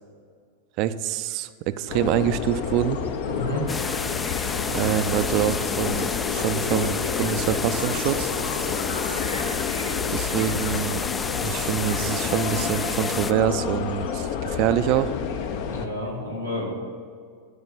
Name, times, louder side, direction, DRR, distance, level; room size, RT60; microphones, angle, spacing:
voice 1, 0.8-3.0 4.7-8.3 10.1-11.0 11.4-15.2, right 12 dB, 40° right, 12 dB, 0.5 m, -25 dB
sound 1, 1.3-1.4 1.7-16.1, left 3 dB, 70° left, 1.1 m, -41 dB
sound 2, 1.9-15.9, left 7 dB, 45° left, 0.7 m, -29 dB
voice 2, 3.3-3.7 15.6-16.7, left 1 dB, 90° left, -5 dB, 2.7 m, -30 dB
sound 3, 3.7-13.3, left 4 dB, 15° left, 0.4 m, -31 dB
11.5 x 5.2 x 7.6 m, 2.1 s
figure-of-eight pair, 90°, 0 cm